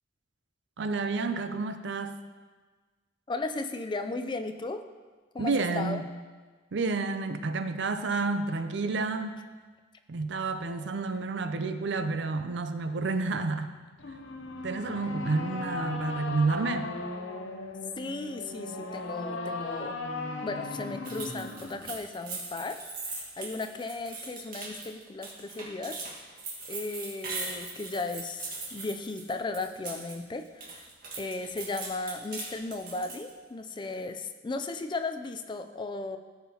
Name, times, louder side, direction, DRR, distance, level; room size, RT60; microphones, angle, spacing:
voice 1, 0.8-2.2 5.4-6.0 6.7-9.4 10.1-13.7 14.6-16.9, right 3 dB, 65° right, 9 dB, 0.5 m, -30 dB
voice 2, 3.3-4.8 5.3-6.0 18.0-20.0 20.4-22.8 23.1-26.0 26.7-30.9 31.2-36.2, left 3 dB, 25° left, 8 dB, 0.4 m, -36 dB
sound 1, 14.0-22.0, left 3 dB, 75° left, 0.8 m, -37 dB
sound 2, 21.0-30.2 30.4-33.3, right 3 dB, 50° right, 1.7 m, -40 dB
14.0 x 5.6 x 2.9 m, 1.4 s
head